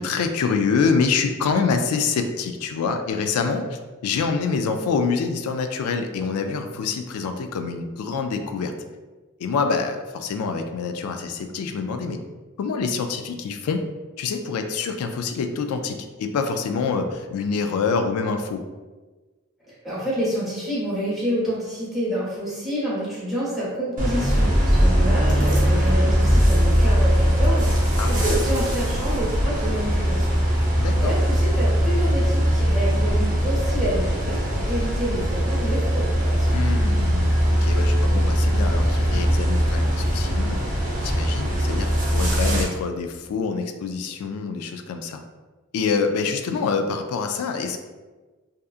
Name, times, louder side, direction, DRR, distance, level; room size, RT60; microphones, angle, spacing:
voice 1, 0.0-8.7 9.4-12.2 12.6-13.8 14.2-18.6 28.0-28.3 30.8-31.2 36.5-45.2 45.7-47.8, left 5 dB, 85° left, 11 dB, 0.3 m, -26 dB
voice 2, 19.7-36.6, equal, ahead, -9 dB, 1.0 m, -28 dB
sound 1, 24.0-42.6, equal, 40° right, 0.7 m, -20 dB
2.7 x 2.4 x 2.4 m, 1.3 s
head